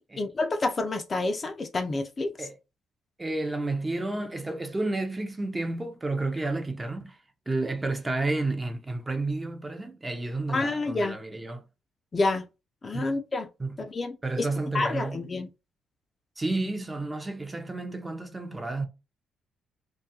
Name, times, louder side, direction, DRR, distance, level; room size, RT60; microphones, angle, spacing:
voice 1, 0.2-2.5 10.5-11.2 12.1-12.5 12.8-13.5 13.9-14.5 14.7-15.5, left 3 dB, 35° left, 0.4 m, -28 dB
voice 2, 3.2-7.2 7.5-11.6 12.9-13.2 13.6-13.8 14.2-15.2 16.4-18.9, right 2 dB, 20° right, 0.5 m, -31 dB
2.5 x 2.3 x 2.7 m
cardioid pair, 90°, 0 cm